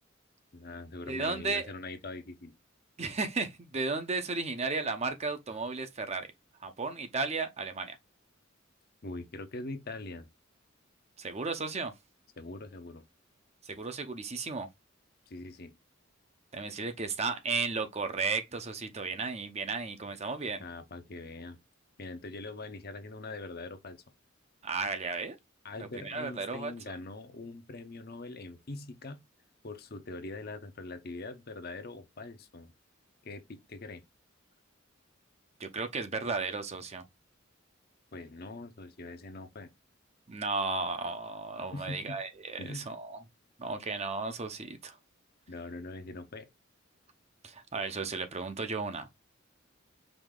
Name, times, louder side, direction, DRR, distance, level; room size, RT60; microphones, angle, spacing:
voice 1, 0.5-2.5 9.0-10.3 12.4-13.0 15.3-15.7 20.6-21.6 22.0-24.0 25.6-29.2 29.6-32.7 33.2-34.0 38.1-39.7 41.7-42.2 42.6-42.9 45.5-46.5, left 2 dB, 50° left, 0.8 m, -42 dB
voice 2, 1.1-1.7 3.0-6.3 6.6-8.0 11.2-11.9 13.6-14.7 16.5-20.6 24.6-25.4 25.8-26.7 35.6-37.0 40.3-43.2 43.6-45.0 47.4-49.1, right 4 dB, 35° right, 0.7 m, -34 dB
5.0 x 2.6 x 3.7 m
head